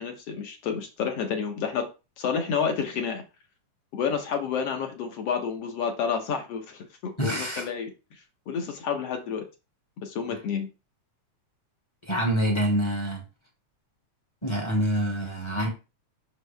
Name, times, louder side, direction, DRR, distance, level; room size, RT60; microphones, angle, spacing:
voice 1, 0.0-1.9 2.2-3.2 3.9-7.9 8.5-9.5 10.0-10.7, left 6 dB, 60° left, 1.9 m, -29 dB
voice 2, 7.2-7.6 12.1-13.2 14.4-15.7, right 1 dB, 15° left, 1.0 m, -26 dB
6.4 x 6.1 x 3.4 m
omnidirectional pair, 3.5 m